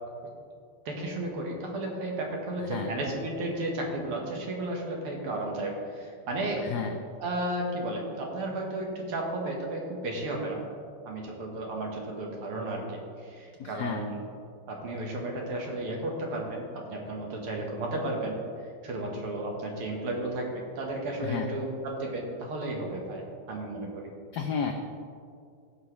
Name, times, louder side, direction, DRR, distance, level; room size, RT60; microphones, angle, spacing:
voice 1, 0.9-6.7 7.2-10.6 11.0-14.3 14.7-24.1, right 1 dB, 80° right, 0 dB, 2.2 m, -33 dB
voice 2, 13.6-14.0 21.2-21.5 24.3-24.7, left 7 dB, 80° left, 4 dB, 0.9 m, -31 dB
16.0 x 5.5 x 3.2 m, 2.3 s
omnidirectional pair, 2.4 m